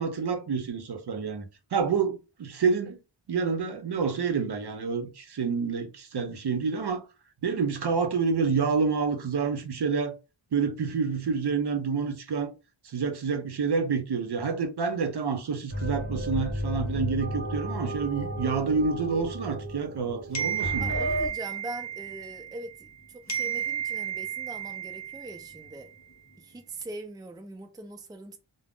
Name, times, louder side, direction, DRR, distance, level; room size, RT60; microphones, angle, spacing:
voice 1, 0.0-1.4 1.7-3.0 3.3-7.0 7.4-10.1 10.5-12.5 12.8-20.9, right 5 dB, 60° right, 0.6 m, -28 dB
sound 1, 15.7-21.3, equal, 25° right, 0.8 m, -33 dB
sound 2, 20.3-23.0 23.3-25.9, right 9 dB, 35° left, 0.7 m, -33 dB
voice 2, 20.8-25.9 26.4-28.4, right 1 dB, 10° right, 0.4 m, -42 dB
2.4 x 2.0 x 3.4 m
wide cardioid pair, 95°, 46 cm